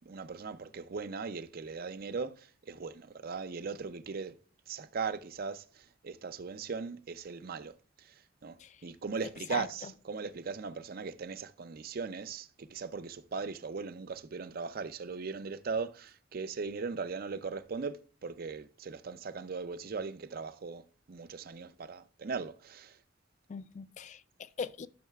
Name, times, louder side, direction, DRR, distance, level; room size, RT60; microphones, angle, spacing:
voice 1, 0.1-4.4 4.7-5.6 6.0-7.7 8.4-8.5 8.8-20.8 21.1-23.0, right 5 dB, 50° right, 0.5 m, -39 dB
voice 2, 9.5-9.9 23.5-24.9, left 6 dB, 40° left, 0.3 m, -41 dB
12.0 x 6.5 x 2.3 m
head